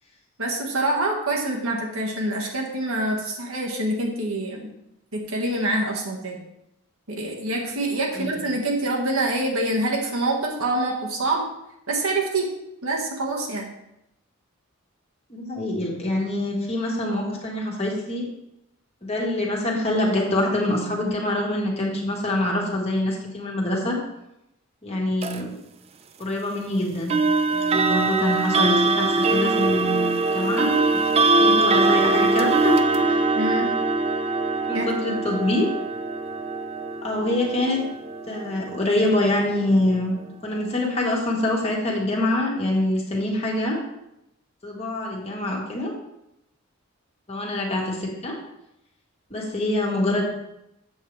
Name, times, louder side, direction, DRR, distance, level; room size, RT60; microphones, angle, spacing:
voice 1, 0.4-4.7 5.1-6.4 7.1-11.4 11.9-12.5 12.8-13.7 33.4-33.7 34.7-35.2, right 2 dB, 80° right, -1 dB, 1.7 m, -26 dB
voice 2, 8.1-8.5 15.3-18.3 19.0-24.0 24.8-25.5 26.2-27.1 27.5-31.0 31.4-33.2 34.7-35.7 37.0-37.8 38.3-40.1 40.4-43.8 44.6-45.9 47.3-48.4 49.3-50.2, left 1 dB, 30° left, -2 dB, 1.6 m, -25 dB
sound 1, 25.2-25.4 27.1-39.9, right 3 dB, 30° right, 0.4 m, -22 dB
7.9 x 7.6 x 3.3 m, 0.84 s
head